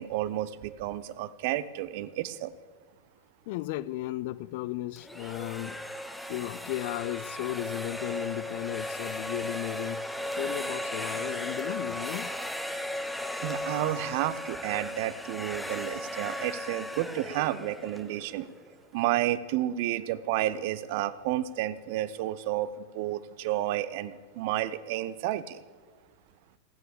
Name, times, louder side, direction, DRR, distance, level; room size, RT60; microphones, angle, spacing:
voice 1, 0.0-2.5 13.4-18.5 18.9-22.7 22.9-25.6, right 14 dB, 50° right, 0.6 m, -31 dB
voice 2, 3.5-5.8 6.3-10.0 10.4-12.3, left 16 dB, 50° left, 0.4 m, -35 dB
sound 1, 5.0-18.8, left 1 dB, 5° left, 1.0 m, -36 dB
16.5 x 9.1 x 7.0 m
figure-of-eight pair, 90°, 0 cm